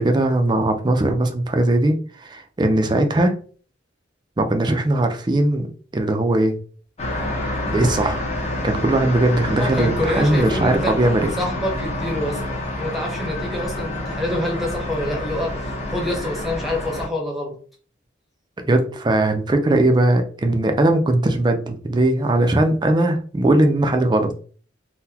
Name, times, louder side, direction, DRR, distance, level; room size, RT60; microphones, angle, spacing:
voice 1, 0.0-3.3 4.4-5.7 5.9-6.6 7.7-8.3 8.6-11.3 18.6-24.3, right 1 dB, 20° right, 5 dB, 0.4 m, -19 dB
sound 1, 7.0-17.1, left 1 dB, 35° left, 0.8 m, -27 dB
voice 2, 9.6-11.0 11.4-15.5 15.9-17.6, left 1 dB, ahead, -1 dB, 0.8 m, -26 dB
3.8 x 2.2 x 2.8 m, 0.42 s
head